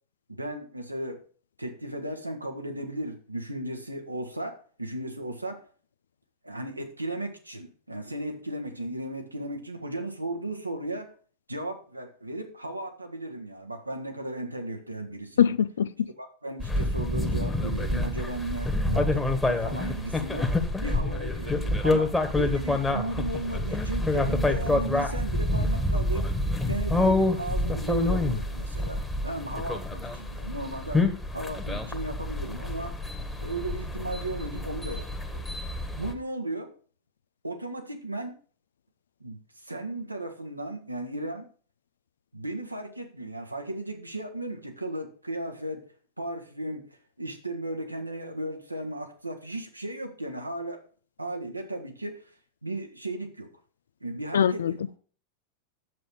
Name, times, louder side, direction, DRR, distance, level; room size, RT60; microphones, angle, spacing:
voice 1, 0.3-1.2 1.6-5.6 6.4-11.1 11.5-15.6 16.2-20.5 20.8-26.3 26.7-31.1 31.3-33.0 33.4-35.5 36.0-36.7 37.4-38.4 39.2-41.5 42.3-45.9 46.2-46.9 47.2-50.8 51.2-52.2 52.6-53.5 54.0-54.8, right 1 dB, 85° right, 1.5 m, -35 dB
voice 2, 15.4-15.9 54.3-55.0, left 9 dB, 65° left, 0.5 m, -23 dB
sound 1, 16.6-36.1, left 2 dB, 5° left, 1.6 m, -27 dB
9.4 x 7.6 x 5.0 m
figure-of-eight pair, 90°, 0 cm